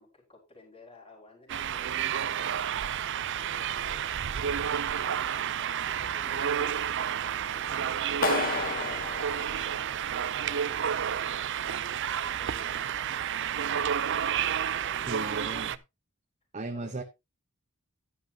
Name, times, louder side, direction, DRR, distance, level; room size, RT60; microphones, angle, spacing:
voice 1, 0.0-2.9 3.3-4.1 4.5-9.9 10.1-14.0 14.3-15.6 16.7-17.0, left 2 dB, 25° left, 4.8 m, -55 dB
sound 1, 1.5-15.8, right 8 dB, 60° right, 0.6 m, -30 dB
Clapping, 8.2-10.3, left 4 dB, 45° left, 1.1 m, -32 dB
voice 2, 15.1-15.7 16.5-17.0, right 2 dB, 35° right, 1.0 m, -36 dB
11.5 x 10.5 x 2.9 m
head